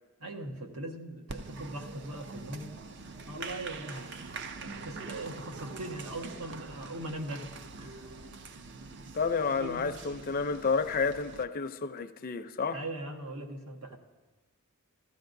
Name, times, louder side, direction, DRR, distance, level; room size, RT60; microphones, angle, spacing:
voice 1, 0.2-8.1 9.6-9.9 12.7-14.0, right 1 dB, 85° right, 1.3 m, -41 dB
Applause, 1.3-11.4, right 4 dB, 50° right, 0.5 m, -44 dB
voice 2, 9.1-12.8, left 5 dB, 40° left, 0.5 m, -30 dB
15.5 x 14.5 x 2.6 m
head